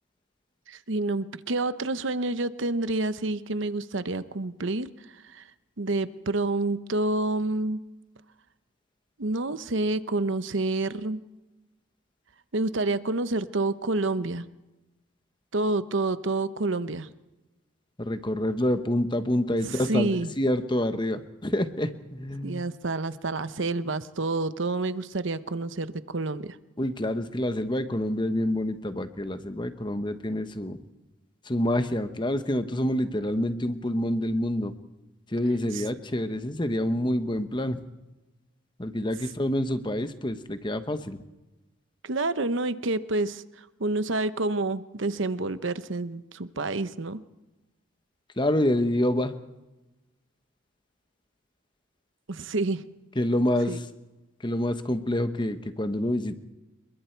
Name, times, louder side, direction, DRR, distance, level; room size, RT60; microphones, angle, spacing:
voice 1, 0.7-4.9 5.2-5.4 5.8-7.8 9.2-11.2 12.5-14.5 15.5-17.1 19.6-20.3 22.4-26.6 35.7-35.8 42.0-43.4 43.8-47.2 52.3-52.8 53.7-53.8, right 2 dB, 65° right, 13 dB, 0.9 m, -28 dB
voice 2, 18.0-20.1 20.4-22.6 26.8-30.8 31.4-34.7 35.3-37.8 38.8-41.2 48.4-49.3 53.2-53.8 54.4-56.4, left 1 dB, 20° left, 10 dB, 1.1 m, -27 dB
28.5 x 22.0 x 4.6 m, 1.1 s
head